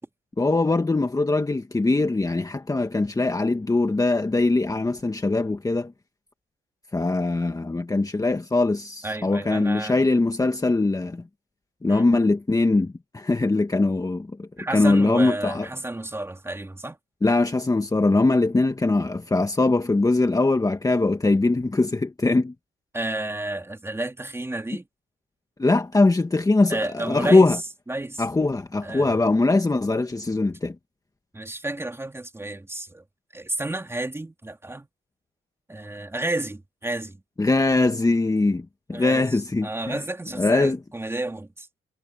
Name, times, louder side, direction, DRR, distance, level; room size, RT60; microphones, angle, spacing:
voice 1, 0.4-5.9 6.9-11.2 11.8-15.7 17.2-22.5 25.6-27.6 28.2-30.7 37.4-40.0 40.4-40.8, left 2 dB, 15° left, 1.5 m, -22 dB
voice 2, 9.0-10.0 11.9-12.1 14.6-17.0 22.9-24.9 26.7-27.5 27.9-28.2 28.8-29.3 31.3-33.0 33.3-34.9 35.7-37.2 38.9-41.7, right 2 dB, 10° right, 3.3 m, -31 dB
cardioid pair, 90°, 20 cm